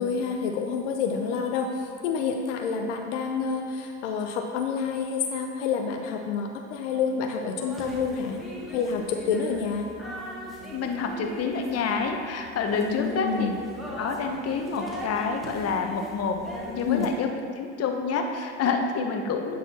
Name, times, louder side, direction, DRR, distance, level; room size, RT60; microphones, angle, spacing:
voice 1, 0.0-8.4 8.7-9.8 12.8-13.5 16.9-17.1, left 6 dB, 85° left, 3 dB, 0.6 m, -28 dB
sound 1, 7.6-17.1, equal, ahead, 1.7 m, -39 dB
voice 2, 10.7-13.5 14.0-16.4 16.7-17.3 17.6-19.6, left 5 dB, 45° left, 4 dB, 1.0 m, -28 dB
9.3 x 4.2 x 4.2 m, 2.2 s
hypercardioid pair, 70°, 35 cm